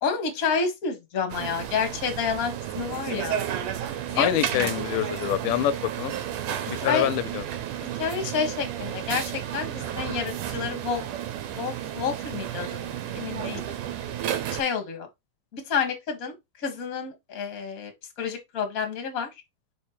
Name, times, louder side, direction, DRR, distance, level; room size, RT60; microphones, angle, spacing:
voice 1, 0.0-3.4 4.1-4.7 6.8-7.1 7.9-11.0 11.5-13.7 14.5-15.1 15.5-16.3 16.6-17.9 18.2-19.3, left 6 dB, 35° left, 1.5 m, -29 dB
sound 1, 1.3-14.6, right 10 dB, 75° right, 2.3 m, -32 dB
voice 2, 4.2-6.1 6.7-7.4, left 12 dB, 80° left, 2.1 m, -26 dB
5.8 x 4.2 x 4.6 m
omnidirectional pair, 3.8 m